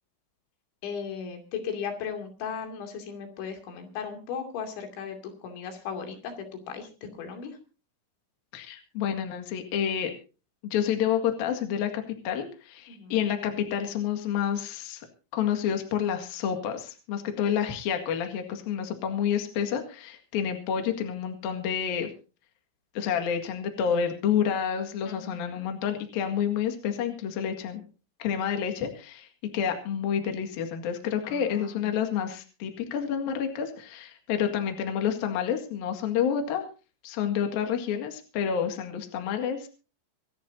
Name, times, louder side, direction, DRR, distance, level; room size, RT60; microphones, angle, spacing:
voice 1, 0.8-7.6 12.9-13.2 25.0-25.8 31.2-31.9, left 6 dB, 85° left, 4 dB, 5.0 m, -37 dB
voice 2, 8.5-10.1 10.6-15.1 15.3-22.1 23.0-27.8 28.2-29.3 29.5-36.7 37.0-39.7, left 8 dB, 60° left, 5 dB, 3.5 m, -29 dB
25.5 x 12.0 x 2.7 m, 0.34 s
omnidirectional pair, 5.1 m